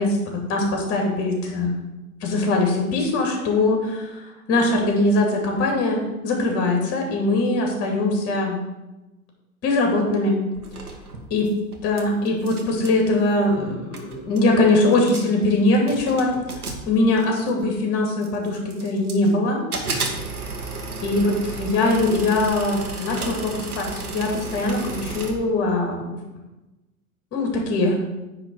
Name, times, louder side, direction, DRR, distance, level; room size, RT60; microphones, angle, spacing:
voice 1, 0.0-1.7 2.2-4.2 4.5-8.6 9.6-10.4 11.3-11.5 11.8-16.3 16.9-19.6 21.0-26.1 27.3-28.0, left 2 dB, 30° left, 1 dB, 2.5 m, -21 dB
sound 1, 10.5-12.0 12.3-13.0 13.7-13.8 13.9-14.5 14.9-15.4 15.9-17.6 18.2-19.3 19.7-25.3, right 3 dB, 80° right, 1.4 m, -33 dB
9.7 x 3.8 x 6.2 m, 1.0 s
figure-of-eight pair, 95°, 44 cm